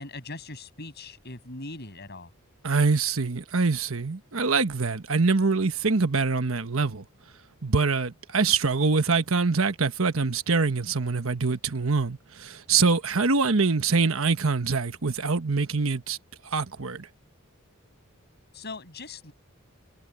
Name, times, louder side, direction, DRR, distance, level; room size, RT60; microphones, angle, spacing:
voice 1, 0.0-2.3 18.5-19.3, left 2 dB, 50° left, 7.7 m, -40 dB
voice 2, 2.6-7.0 7.6-16.2 16.4-17.1, right 4 dB, 70° right, 1.2 m, -24 dB
head